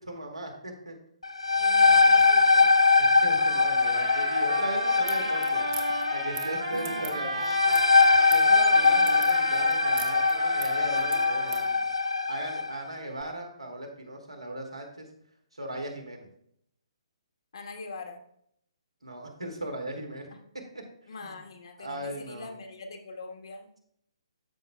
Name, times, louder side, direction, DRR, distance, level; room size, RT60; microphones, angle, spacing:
voice 1, 0.0-1.0 3.0-5.6 6.1-7.4 8.3-11.9 12.3-15.1 15.5-16.3 19.0-20.3 21.2-21.4 21.8-22.5, right 1 dB, 90° right, 1 dB, 2.2 m, -38 dB
sound 1, 1.2-12.7, left 4 dB, 80° left, 0.5 m, -22 dB
voice 2, 1.6-2.7 5.1-5.4 6.7-7.8 17.5-18.2 21.1-23.7, left 3 dB, 60° left, 3 dB, 1.5 m, -42 dB
Trumpet, 3.4-11.7, right 4 dB, 65° right, 2.8 m, -37 dB
sound 2, 5.0-11.7, right 8 dB, 40° right, 1.1 m, -43 dB
13.0 x 5.7 x 2.3 m, 0.72 s
figure-of-eight pair, 135°, 3 cm